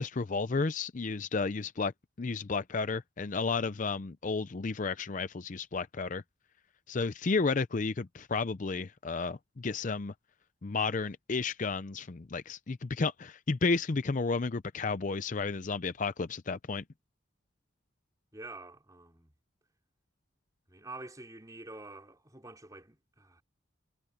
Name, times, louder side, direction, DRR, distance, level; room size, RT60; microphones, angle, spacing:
voice 1, 0.0-1.9 2.2-6.2 6.9-10.1 10.6-16.8, left 4 dB, 40° left, 0.5 m, -32 dB
voice 2, 18.3-19.3 20.7-23.4, right 2 dB, 15° right, 4.6 m, -47 dB
head